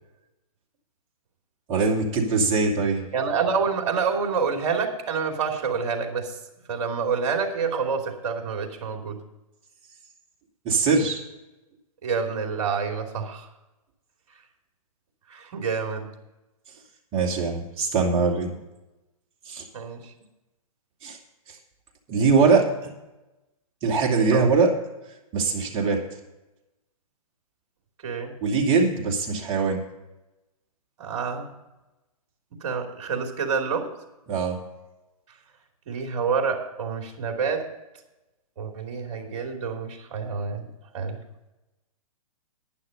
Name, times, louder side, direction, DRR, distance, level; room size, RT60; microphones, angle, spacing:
voice 1, 1.7-3.0 10.6-11.2 17.1-18.5 19.5-19.7 21.0-21.2 22.1-22.7 23.8-24.7 25.3-26.0 28.4-29.8 34.3-34.6, right 4 dB, 30° right, 0 dB, 2.7 m, -22 dB
voice 2, 3.1-6.4 6.7-9.2 12.0-13.5 15.3-16.1 19.7-20.0 24.3-24.5 28.0-28.3 31.0-31.5 32.6-33.9 35.9-37.7 38.6-40.7 40.9-41.2, right 5 dB, 55° right, 3 dB, 3.0 m, -27 dB
11.5 x 10.5 x 5.3 m, 1.0 s
hypercardioid pair, 140°, 19 cm